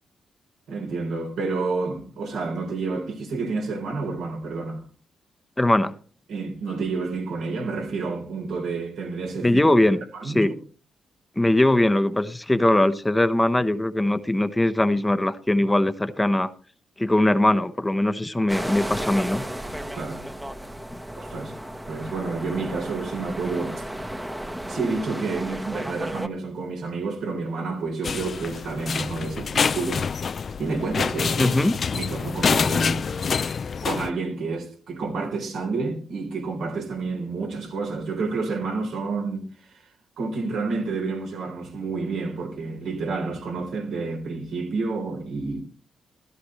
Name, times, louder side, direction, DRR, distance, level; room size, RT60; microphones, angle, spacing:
voice 1, 0.7-4.8 6.3-9.6 10.1-10.4 19.9-20.2 21.2-21.5 21.9-24.2 24.7-30.1 30.6-31.6 31.9-33.2 33.8-39.8 40.2-45.6, right 3 dB, 75° right, 3.7 m, -29 dB
voice 2, 5.6-5.9 9.4-10.5 11.4-16.5 17.0-19.5 31.4-31.8, left 1 dB, 15° left, 0.9 m, -21 dB
sound 1, 18.5-26.3, right 1 dB, 10° right, 1.1 m, -34 dB
sound 2, 28.0-34.1, left 6 dB, 55° left, 0.5 m, -26 dB
15.0 x 12.5 x 3.2 m
supercardioid pair, 50°, 0 cm